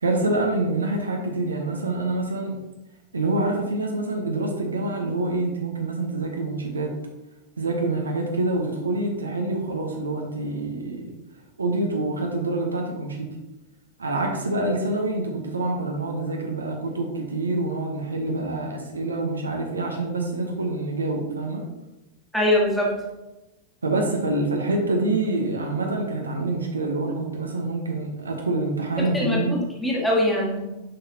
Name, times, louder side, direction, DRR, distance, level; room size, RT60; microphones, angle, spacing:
voice 1, 0.0-2.6 3.1-7.0 7.6-11.1 11.6-13.4 14.0-21.6 23.8-29.6, right 2 dB, 75° right, 2 dB, 0.9 m, -26 dB
voice 2, 22.3-22.9 29.1-30.6, left 1 dB, 5° left, -4 dB, 1.7 m, -22 dB
6.7 x 5.7 x 2.8 m, 1.0 s
figure-of-eight pair, 90°, 0 cm